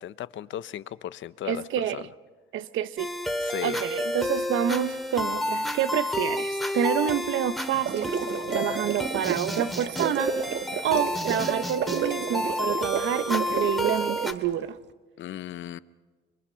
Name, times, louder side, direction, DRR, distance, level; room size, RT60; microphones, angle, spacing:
voice 1, 0.0-2.0 3.4-3.8 15.2-15.8, left 11 dB, 70° left, 0.8 m, -36 dB
voice 2, 1.4-2.1 2.5-3.1 3.6-8.1 8.5-10.4 10.8-14.8, right 10 dB, 80° right, 1.0 m, -28 dB
sound 1, 3.0-14.3, left 1 dB, ahead, 2.2 m, -30 dB
sound 2, 7.7-14.5, right 8 dB, 65° right, 1.4 m, -32 dB
30.0 x 22.0 x 5.8 m
cardioid pair, 90°, 20 cm